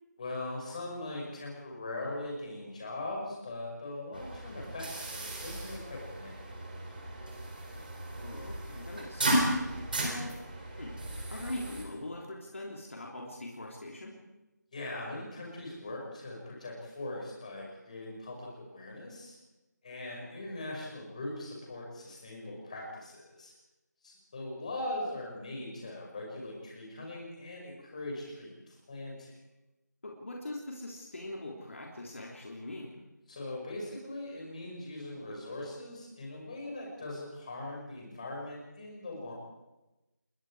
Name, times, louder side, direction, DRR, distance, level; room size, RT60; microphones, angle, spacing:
voice 1, 0.2-6.6 14.7-19.4 19.8-23.5 24.0-29.3 33.3-39.3, left 2 dB, 20° left, -1 dB, 5.9 m, -40 dB
sound 1, 4.1-11.8, right 1 dB, 30° right, 4.0 m, -35 dB
voice 2, 8.1-9.6 10.0-10.3 10.8-14.2 20.1-20.3 30.0-33.0, left 1 dB, 45° left, -1 dB, 3.4 m, -42 dB
28.0 x 22.0 x 4.9 m, 1.0 s
figure-of-eight pair, 175°, 10 cm